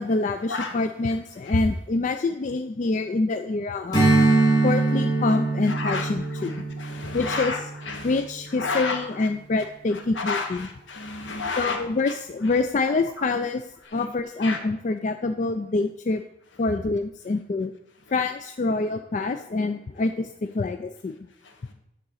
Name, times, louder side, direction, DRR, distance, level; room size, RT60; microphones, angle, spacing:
voice 1, 0.0-4.1 4.6-6.6 7.1-7.7 8.0-10.7 11.6-13.6 13.9-16.2 16.6-17.7 18.1-21.2, left 3 dB, 40° left, 8 dB, 0.3 m, -26 dB
Strum, 3.9-8.7, right 3 dB, 20° left, 2.1 m, -23 dB
voice 2, 5.7-6.0 6.8-7.6 7.9-8.1 8.6-9.0 10.2-10.5 10.9-11.8 14.0-14.1 14.4-14.6, left 3 dB, 70° left, 4 dB, 1.4 m, -29 dB
9.9 x 4.0 x 6.3 m, 0.81 s
head